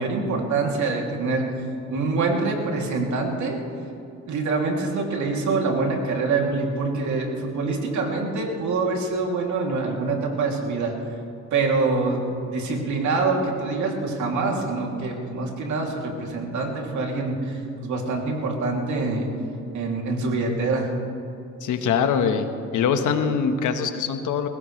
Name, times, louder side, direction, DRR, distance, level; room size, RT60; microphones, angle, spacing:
voice 1, 0.0-1.5 1.9-3.6 4.3-10.9 11.5-19.3 19.7-20.9, right 3 dB, 70° right, 0 dB, 3.0 m, -25 dB
voice 2, 21.6-22.5 22.7-24.5, left 6 dB, 80° left, 7 dB, 1.4 m, -23 dB
21.0 x 17.0 x 3.3 m, 2.6 s
cardioid pair, 90°, 30 cm